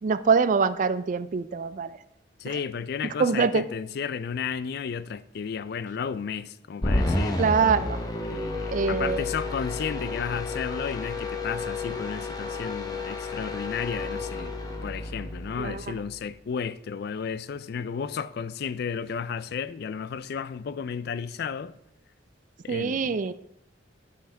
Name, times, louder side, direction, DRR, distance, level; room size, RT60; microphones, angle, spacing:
voice 1, 0.0-2.0 2.5-2.6 3.2-3.6 7.4-8.0 8.7-9.2 15.6-15.9 22.7-23.3, right 5 dB, 45° right, 0.3 m, -24 dB
voice 2, 2.4-7.4 8.2-21.7 22.6-23.2, left 6 dB, 55° left, 0.3 m, -33 dB
sound 1, 6.8-16.2, left 2 dB, 20° left, 0.9 m, -31 dB
10.0 x 5.7 x 3.4 m
head